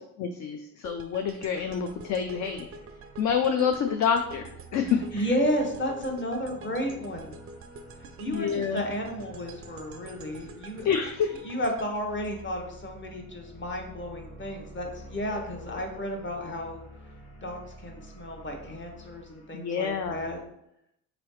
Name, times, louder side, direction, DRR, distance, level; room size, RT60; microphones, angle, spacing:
voice 1, 0.2-2.7 3.2-5.3 8.3-8.8 10.8-11.4 19.5-20.3, left 7 dB, 50° left, 6 dB, 0.4 m, -27 dB
sound 1, 0.8-13.0, right 3 dB, 40° right, 0.4 m, -47 dB
sound 2, 1.5-20.3, right 1 dB, 85° left, 1.5 m, -49 dB
voice 2, 5.1-7.4 8.2-10.9 11.4-16.8 17.4-20.4, equal, 30° left, 2 dB, 1.0 m, -32 dB
3.9 x 3.0 x 3.1 m, 0.78 s
supercardioid pair, 75°, 37 cm